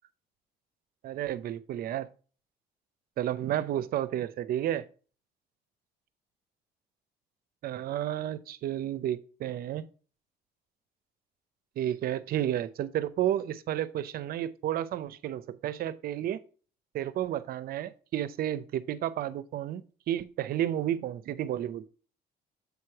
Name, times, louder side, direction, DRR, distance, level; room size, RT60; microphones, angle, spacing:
voice 1, 1.0-2.1 3.2-4.8 7.6-9.9 11.8-16.4 16.9-21.8, right 11 dB, 60° right, 0.6 m, -31 dB
8.2 x 3.2 x 5.6 m
cardioid pair, 110°, 17 cm